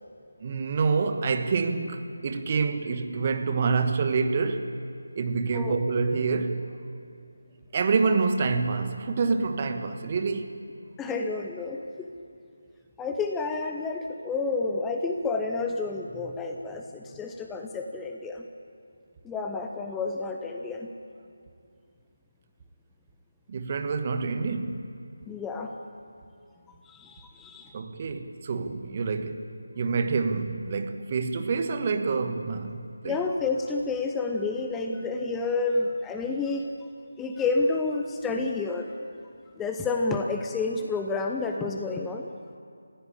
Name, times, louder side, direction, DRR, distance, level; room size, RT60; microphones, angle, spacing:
voice 1, 0.4-4.7 5.1-6.6 7.7-10.5 23.5-24.9 27.7-29.5 29.7-33.1, right 4 dB, 30° right, 1.4 m, -27 dB
voice 2, 11.0-12.1 13.0-18.4 19.2-20.9 25.3-25.7 26.8-27.8 33.0-36.9 37.2-38.9 39.6-42.3, left 3 dB, 5° left, 0.8 m, -30 dB
29.0 x 16.0 x 8.6 m
figure-of-eight pair, 160°, 0 cm